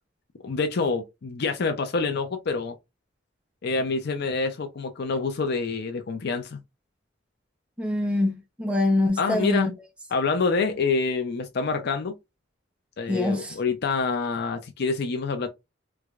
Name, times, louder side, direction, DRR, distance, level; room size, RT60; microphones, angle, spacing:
voice 1, 0.4-2.7 3.6-6.6 9.2-9.7 10.1-12.2 13.0-15.5, left 4 dB, 55° left, 0.5 m, -27 dB
voice 2, 7.8-9.7 13.1-13.6, left 2 dB, 5° right, 0.6 m, -24 dB
4.6 x 2.2 x 2.4 m
head